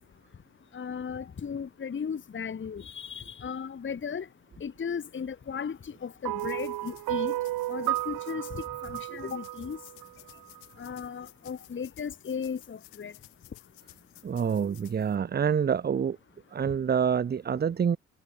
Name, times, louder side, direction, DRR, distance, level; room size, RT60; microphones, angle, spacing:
voice 1, 0.7-4.3 4.6-7.3 7.7-9.8 10.8-13.1, left 6 dB, 35° left, 1.2 m, -36 dB
sound 1, 6.2-10.6, right 16 dB, 70° right, 1.3 m, -33 dB
sound 2, 6.4-15.2, left 29 dB, 85° left, 4.7 m, -56 dB
voice 2, 14.2-16.2 16.5-18.0, right 7 dB, 30° right, 0.6 m, -27 dB
hypercardioid pair, 50°, 35 cm